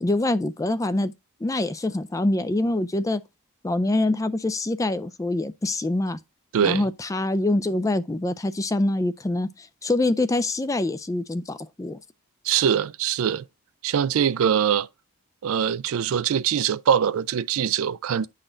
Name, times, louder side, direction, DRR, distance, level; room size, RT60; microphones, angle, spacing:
voice 1, 0.0-1.1 1.4-3.2 3.6-6.2 6.6-12.0, left 2 dB, 15° left, 0.3 m, -25 dB
voice 2, 6.5-6.8 12.4-13.4 13.8-14.9 15.4-18.3, right 8 dB, 65° right, 0.3 m, -23 dB
9.9 x 4.1 x 3.8 m
head